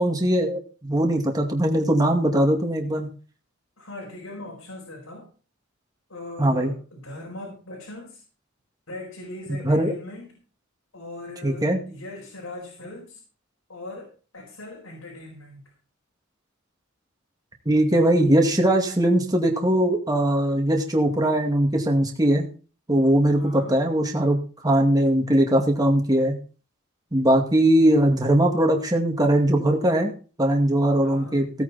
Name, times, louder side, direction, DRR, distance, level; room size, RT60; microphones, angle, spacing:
voice 1, 0.0-3.1 6.4-6.7 9.6-9.9 11.4-11.8 17.7-22.5 22.9-26.3 27.1-30.1 30.4-31.5, right 1 dB, 20° right, 2 dB, 2.2 m, -20 dB
voice 2, 3.8-5.3 6.1-8.2 8.9-10.4 10.9-13.2 13.7-15.7 23.3-23.8 31.0-31.4, left 2 dB, 85° left, -2 dB, 5.0 m, -40 dB
17.0 x 8.8 x 4.3 m, 0.37 s
head